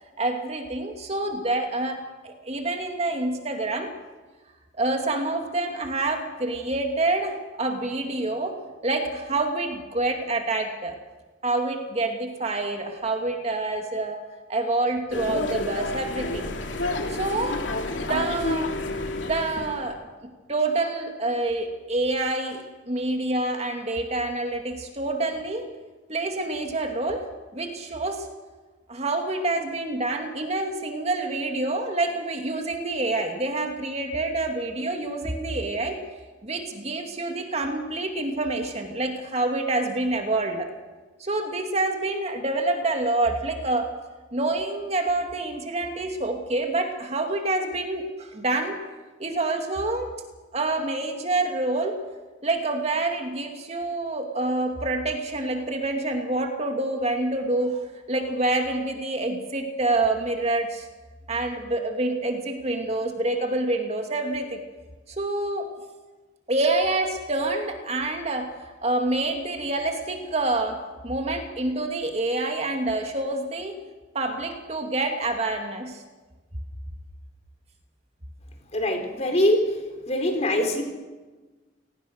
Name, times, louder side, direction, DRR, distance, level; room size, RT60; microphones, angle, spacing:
voice 1, 0.2-2.0 2.2-3.9 4.8-11.0 11.4-14.2 14.5-16.5 17.1-17.6 17.9-18.7 19.3-25.7 26.1-28.3 28.9-36.0 36.4-40.7 41.2-43.9 44.3-48.8 49.2-50.1 50.5-52.0 52.4-60.9 61.3-64.6 65.1-65.7 66.5-73.8 74.1-76.0, right 2 dB, 35° right, 4 dB, 2.4 m, -27 dB
sound 1, 15.1-19.8, left 2 dB, 90° left, 2.8 m, -29 dB
voice 2, 78.7-79.6 80.1-80.8, left 1 dB, 35° left, 4 dB, 4.3 m, -23 dB
29.5 x 19.0 x 6.6 m, 1.3 s
head